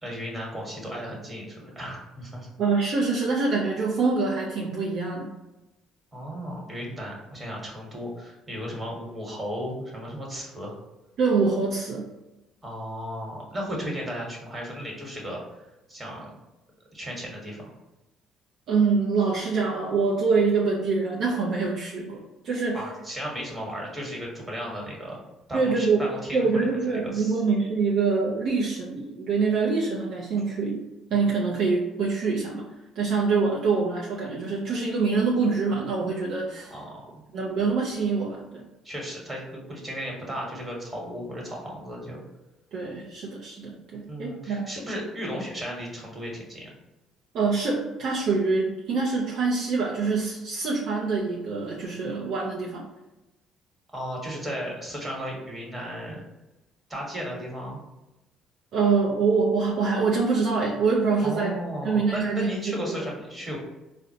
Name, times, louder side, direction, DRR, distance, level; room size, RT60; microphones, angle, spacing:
voice 1, 0.0-2.5 6.1-10.8 12.6-16.3 16.9-17.7 22.7-25.2 25.5-27.3 36.6-37.2 38.8-42.2 44.1-46.7 53.9-56.2 56.9-57.8 61.2-63.6, equal, 20° right, -2 dB, 1.2 m, -35 dB
voice 2, 2.6-5.3 11.2-12.1 18.7-22.8 25.5-32.7 33.0-36.7 37.3-38.6 42.7-44.7 47.3-52.9 58.7-61.5 61.8-62.5 62.9-63.0, right 4 dB, 65° right, -3 dB, 0.5 m, -25 dB
3.8 x 2.0 x 2.7 m, 1.0 s
supercardioid pair, 85°, 0 cm